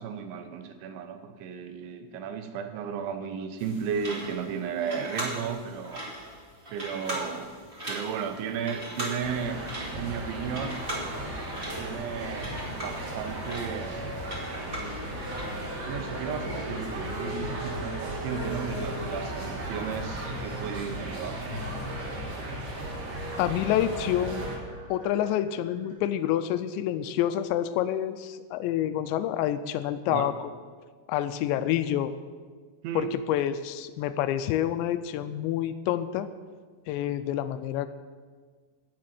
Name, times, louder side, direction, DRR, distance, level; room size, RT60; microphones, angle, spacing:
voice 1, 0.0-6.0 6.7-7.5 7.9-9.6 9.9-10.8 11.8-14.0 15.9-21.4 30.1-30.3 32.8-33.2, right 7 dB, 85° right, 7 dB, 3.3 m, -34 dB
sound 1, 3.6-15.7, right 1 dB, 25° right, 1.3 m, -39 dB
sound 2, 8.5-25.9, equal, 15° left, 1.9 m, -45 dB
sound 3, 9.2-24.6, right 1 dB, 50° right, 2.4 m, -36 dB
voice 2, 23.4-24.5 24.9-30.5 31.1-32.1 33.0-36.3 36.9-37.9, left 11 dB, 85° left, 11 dB, 2.7 m, -28 dB
17.0 x 7.5 x 6.0 m, 1.5 s
omnidirectional pair, 5.3 m